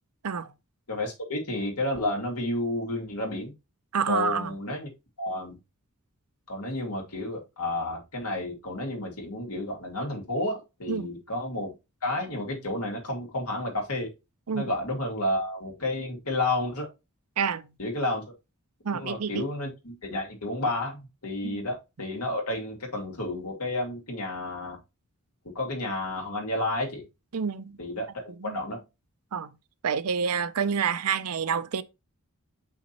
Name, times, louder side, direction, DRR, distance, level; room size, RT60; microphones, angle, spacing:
voice 1, 0.9-3.5 4.1-4.9 5.2-5.6 6.5-11.7 12.0-14.1 14.5-16.9 17.8-18.2 18.9-24.8 25.5-27.0 27.8-28.8, left 1 dB, 80° left, 2.6 m, -31 dB
voice 2, 3.9-4.6 10.9-11.1 14.5-14.7 17.4-17.7 18.8-19.5 21.4-21.6 27.3-27.8 28.4-28.6 29.3-29.5 29.8-31.8, right 6 dB, 85° right, 0.6 m, -28 dB
6.1 x 5.8 x 2.9 m
head